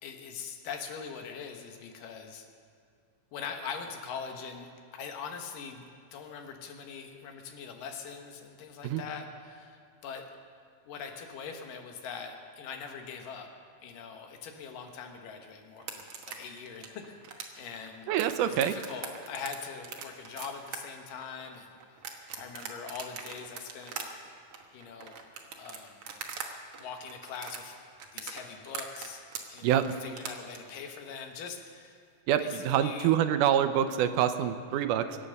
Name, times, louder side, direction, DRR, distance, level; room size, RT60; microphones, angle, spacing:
voice 1, 0.0-2.5 3.3-5.8 6.1-10.3 10.9-13.5 13.8-18.1 18.4-21.8 22.4-24.0 24.7-25.2 25.6-26.1 26.8-27.8 28.1-29.2 29.5-32.0 32.4-33.1, left 6 dB, 85° left, 4 dB, 2.9 m, -42 dB
sound 1, 15.8-26.5 26.7-30.6, right 6 dB, 55° right, 1.8 m, -41 dB
voice 2, 18.1-18.7 29.6-30.0 32.3-35.2, right 10 dB, 80° right, 10 dB, 2.1 m, -26 dB
24.0 x 8.4 x 6.6 m, 2.3 s
omnidirectional pair, 3.8 m